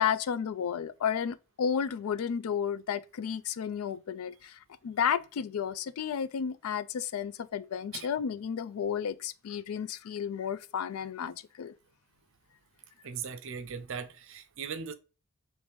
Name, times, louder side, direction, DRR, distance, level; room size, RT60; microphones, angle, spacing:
voice 1, 0.0-11.7, left 7 dB, 75° left, 0.4 m, -32 dB
voice 2, 13.0-14.9, right 6 dB, 60° right, 0.5 m, -39 dB
5.0 x 3.2 x 3.0 m
head